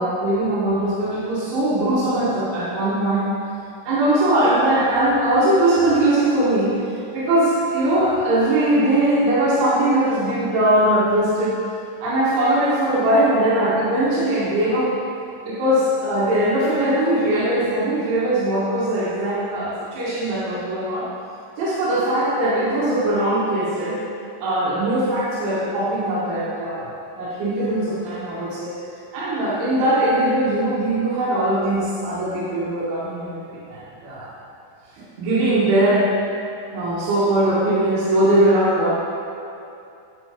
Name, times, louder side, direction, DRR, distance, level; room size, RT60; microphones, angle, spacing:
voice 1, 0.0-3.3 3.9-11.6 12.0-14.9 15.4-21.1 21.6-24.0 24.4-28.7 29.1-34.3 35.2-36.1 36.7-38.9, right 1 dB, 90° right, -9 dB, 4.3 m, -20 dB
11.0 x 8.9 x 3.0 m, 2.6 s
omnidirectional pair, 5.3 m